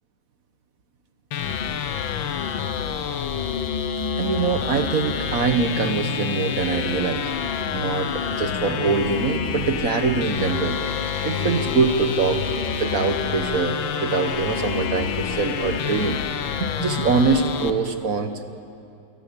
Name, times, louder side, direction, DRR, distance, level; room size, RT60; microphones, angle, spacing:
sound 1, 1.3-17.7, left 7 dB, 80° left, 1.8 m, -28 dB
voice 1, 4.2-7.3 7.7-10.8 11.2-12.4 12.7-16.2 16.6-18.4, right 4 dB, 50° right, 8 dB, 1.4 m, -23 dB
sound 2, 10.3-16.3, left 6 dB, 60° left, 1.6 m, -37 dB
28.0 x 18.0 x 8.6 m, 2.6 s
omnidirectional pair, 2.1 m